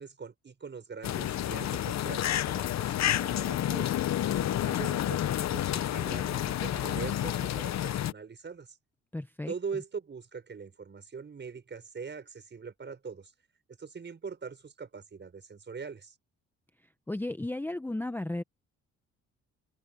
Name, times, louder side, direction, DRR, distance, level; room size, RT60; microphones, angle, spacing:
voice 1, 0.0-3.9 4.4-8.8 9.5-13.3 13.8-16.1, right 5 dB, 35° right, 6.2 m, -42 dB
sound 1, 1.0-8.1, left 12 dB, 65° left, 0.9 m, -30 dB
voice 2, 9.1-9.5 17.1-18.4, left 1 dB, 5° left, 0.8 m, -34 dB
open air
cardioid pair, 90°, 30 cm